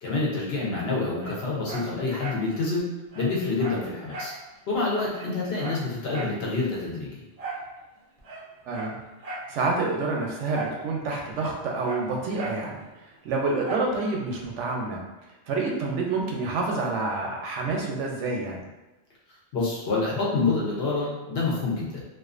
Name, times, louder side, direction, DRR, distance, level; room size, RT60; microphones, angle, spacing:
voice 1, 0.0-4.3 4.7-7.1 19.5-22.0, left 3 dB, 65° left, -4 dB, 0.9 m, -27 dB
Dog, 1.2-2.5 2.8-2.9 3.1-4.4 4.7-4.8 5.1-6.4 7.4-7.7 8.2-9.5 10.5-10.8 11.1-12.7 13.6-14.0 14.4-14.5, right 3 dB, 50° right, 0.4 m, -37 dB
voice 2, 8.7-9.0 9.5-12.8 13.2-15.0 15.5-18.6, right 3 dB, 85° right, -1 dB, 0.9 m, -28 dB
2.4 x 2.4 x 2.4 m, 1.1 s
omnidirectional pair, 1.2 m